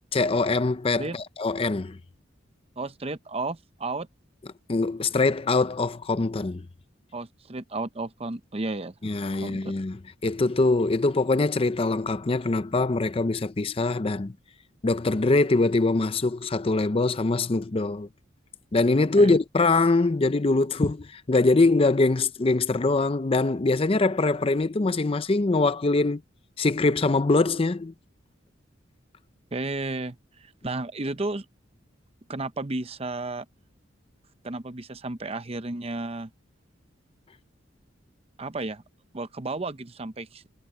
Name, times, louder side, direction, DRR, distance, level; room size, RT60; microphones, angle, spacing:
voice 1, 0.1-2.0 4.7-6.7 9.0-14.3 14.8-18.1 18.7-26.2 26.6-27.9, left 3 dB, 30° left, 0.5 m, -23 dB
voice 2, 2.8-4.1 7.1-8.9 9.4-9.7 19.2-19.4 29.5-31.5 32.3-33.5 34.4-36.3 38.4-38.8 39.1-40.4, right 2 dB, 30° right, 0.8 m, -33 dB
head